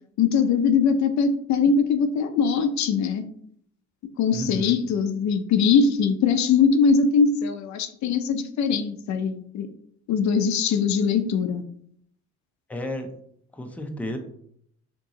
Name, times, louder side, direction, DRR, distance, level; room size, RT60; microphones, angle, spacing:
voice 1, 0.2-3.3 4.2-9.7 10.1-11.6, left 5 dB, 65° left, 9 dB, 0.4 m, -21 dB
voice 2, 4.3-4.8 12.7-13.1 13.5-14.2, left 1 dB, 5° left, 4 dB, 0.5 m, -32 dB
2.9 x 2.7 x 3.7 m, 0.67 s
cardioid pair, 90°, 30 cm